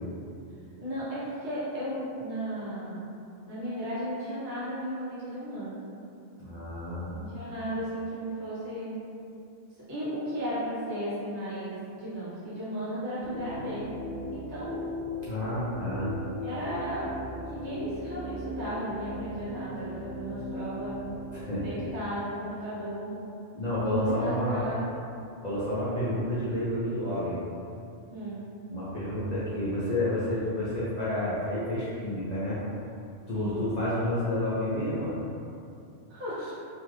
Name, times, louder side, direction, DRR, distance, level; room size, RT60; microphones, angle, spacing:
voice 1, 0.8-3.1 3.5-5.8 7.1-9.0 9.9-13.9 14.3-14.8 16.4-21.1 21.6-23.2 23.9-24.9 28.1-28.4 33.3-33.7 36.1-36.5, equal, 70° right, -10 dB, 1.3 m, -35 dB
voice 2, 6.4-7.2 15.2-16.1 21.3-21.8 23.5-24.6 25.4-27.4 28.7-32.6 33.3-35.2, left 1 dB, 50° left, -10 dB, 0.5 m, -30 dB
sound 1, 13.2-22.0, left 1 dB, 45° right, 1.3 m, -38 dB
2.7 x 2.4 x 3.1 m, 2.5 s
omnidirectional pair, 1.2 m